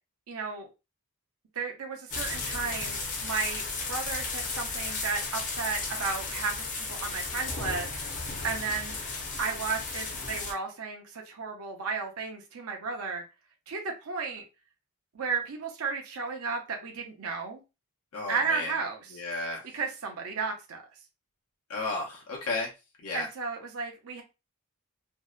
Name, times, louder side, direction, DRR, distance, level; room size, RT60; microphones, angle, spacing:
voice 1, 0.3-0.7 1.6-7.9 8.4-13.2 13.7-14.4 15.1-17.6 18.3-19.2 19.7-20.8 23.1-24.2, right 5 dB, 70° right, 0.6 m, -34 dB
sound 1, 2.1-10.5, left 3 dB, 35° left, 0.6 m, -34 dB
voice 2, 18.1-18.7 19.1-19.6 21.7-22.7 23.0-23.3, left 3 dB, 85° left, 0.7 m, -33 dB
2.6 x 2.1 x 2.3 m
head